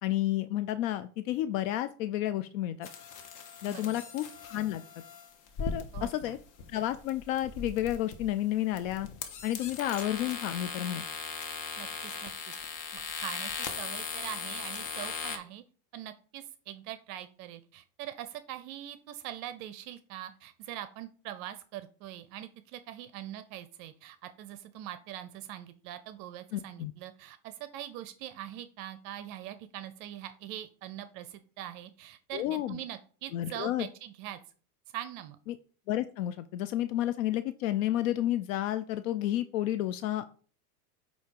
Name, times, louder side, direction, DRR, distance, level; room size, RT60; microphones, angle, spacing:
voice 1, 0.0-2.9 3.6-4.8 5.6-6.4 6.7-9.1 9.4-11.0 26.5-26.9 32.3-32.8 33.3-33.9 35.5-35.6 35.9-40.2, left 13 dB, 60° left, 12 dB, 0.5 m, -31 dB
sound 1, 2.8-15.4, left 5 dB, 40° left, 1.2 m, -39 dB
voice 2, 3.7-4.0 5.9-6.4 11.7-12.3 12.9-15.6 15.9-34.4 34.9-35.4, right 12 dB, 45° right, 11 dB, 0.6 m, -43 dB
8.1 x 2.8 x 4.6 m, 0.41 s
hypercardioid pair, 110°, 47 cm